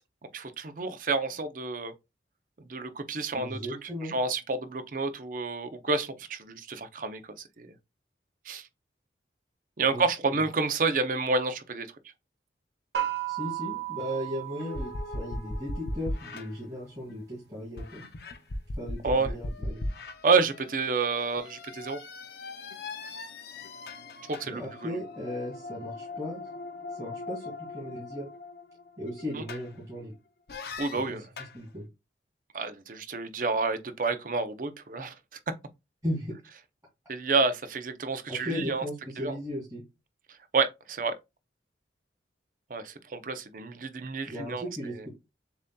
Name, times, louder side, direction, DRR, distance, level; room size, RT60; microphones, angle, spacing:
voice 1, 0.3-1.9 2.7-7.2 7.6-7.7 8.5-8.6 9.8-11.9 19.0-19.3 20.2-22.0 24.3-24.9 30.8-31.3 32.5-35.1 37.1-38.8 39.2-39.4 40.5-41.1 42.7-44.6, right 4 dB, 45° right, 0.5 m, -29 dB
voice 2, 3.3-4.1 9.9-10.0 13.3-18.0 18.8-19.9 24.4-26.4 27.0-28.3 29.0-30.1 30.8-31.2 31.5-31.9 36.0-36.3 38.3-39.8 44.3-45.1, equal, 20° right, 2.1 m, -36 dB
sound 1, 12.9-15.7, right 12 dB, 65° right, 1.4 m, -35 dB
sound 2, 14.6-17.3 17.8-30.0 30.5-31.6, left 2 dB, 60° left, 0.6 m, -39 dB
6.9 x 2.7 x 2.2 m
head